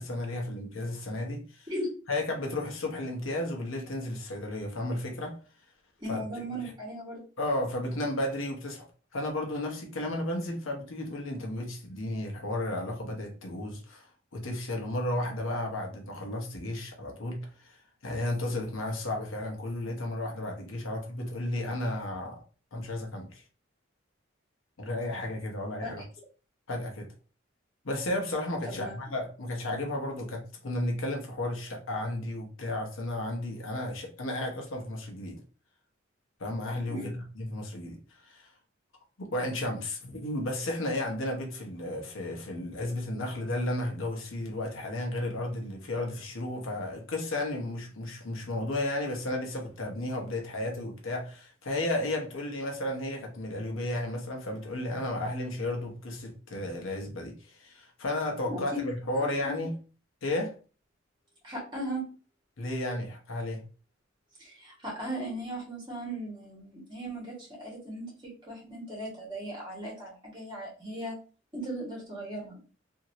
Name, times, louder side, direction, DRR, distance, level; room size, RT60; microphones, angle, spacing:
voice 1, 0.0-1.7 2.1-5.4 6.1-6.2 7.4-8.8 9.1-17.8 18.0-22.4 22.7-23.4 24.8-26.0 26.7-27.1 27.8-35.4 36.4-38.5 39.2-59.7 60.2-60.5 62.6-63.6, left 1 dB, 80° left, 0.9 m, -33 dB
voice 2, 6.0-7.2 25.8-26.0 28.7-29.0 36.9-37.2 58.4-58.8 59.4-59.5 61.4-62.1 64.4-71.1 71.5-72.5, right 1 dB, 25° right, 1.5 m, -37 dB
2.9 x 2.7 x 2.7 m
head